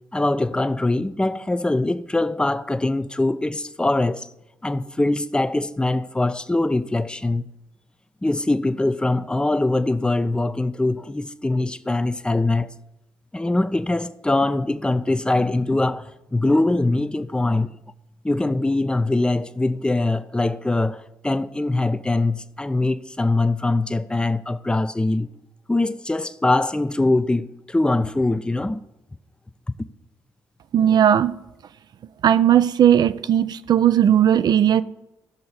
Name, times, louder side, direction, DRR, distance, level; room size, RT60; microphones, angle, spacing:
voice 1, 0.1-4.3 4.6-7.4 8.2-12.7 13.3-17.7 18.2-25.3 25.7-28.8, left 2 dB, 10° left, 0.6 m, -22 dB
voice 2, 30.7-31.3 32.2-34.8, right 10 dB, 50° right, 0.5 m, -17 dB
16.0 x 6.4 x 4.2 m
figure-of-eight pair, 40°, 9 cm